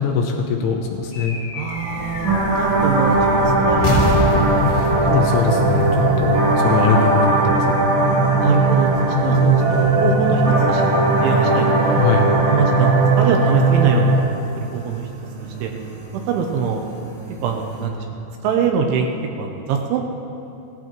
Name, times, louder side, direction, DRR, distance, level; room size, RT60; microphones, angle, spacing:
voice 1, 0.0-1.4 4.7-7.8 12.0-12.3, left 6 dB, 80° left, 2 dB, 3.0 m, -22 dB
sound 1, 1.1-6.8, left 2 dB, 60° left, 2.9 m, -26 dB
voice 2, 1.5-3.2 3.5-4.0 8.4-8.9 9.2-10.4 10.7-12.0 12.5-14.2 14.6-15.1 15.6-15.7 16.3-16.8 17.4-19.1 19.4-20.0, right 6 dB, 80° right, 3 dB, 2.9 m, -23 dB
sound 2, 1.7-17.9, right 4 dB, 35° right, 2.2 m, -32 dB
sound 3, 2.2-14.2, right 2 dB, 60° right, 3.2 m, -18 dB
17.0 x 14.5 x 3.0 m, 2.8 s
omnidirectional pair, 5.9 m